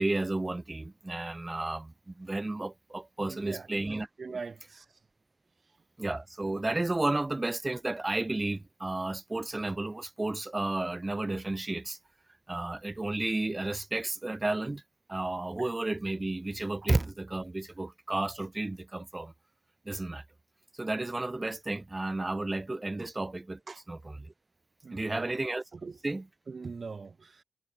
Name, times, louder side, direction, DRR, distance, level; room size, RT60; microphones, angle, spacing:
voice 1, 0.0-4.1 6.0-12.0 12.5-14.8 15.1-19.3 19.8-20.2 20.7-23.6 23.9-24.3 24.9-25.6 26.0-26.2, right 2 dB, 15° right, 1.7 m, -32 dB
voice 2, 3.2-3.7 4.2-5.0 15.6-15.7 16.8-16.9 23.0-23.1 23.7-23.8 24.8-25.4 25.7-26.0 26.5-27.4, right 4 dB, 40° right, 3.6 m, -42 dB
wide cardioid pair, 155°, 0 cm